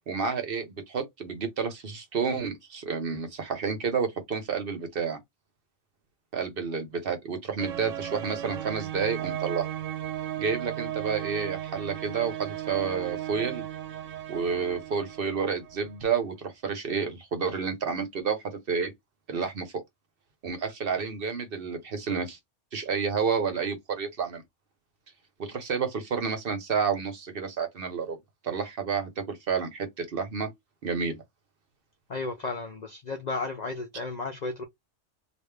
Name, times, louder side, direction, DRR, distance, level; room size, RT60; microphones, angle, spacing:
voice 1, 0.1-5.2 6.3-9.7 10.4-13.6 14.3-18.9 19.3-19.8 20.4-22.4 22.7-24.4 25.4-28.2 28.4-30.5 30.8-31.2, right 6 dB, 55° right, 0.9 m, -30 dB
sound 1, 7.6-15.9, right 12 dB, 85° right, 1.0 m, -35 dB
voice 2, 32.1-34.6, left 3 dB, 55° left, 0.5 m, -33 dB
3.4 x 2.5 x 3.2 m
omnidirectional pair, 1.3 m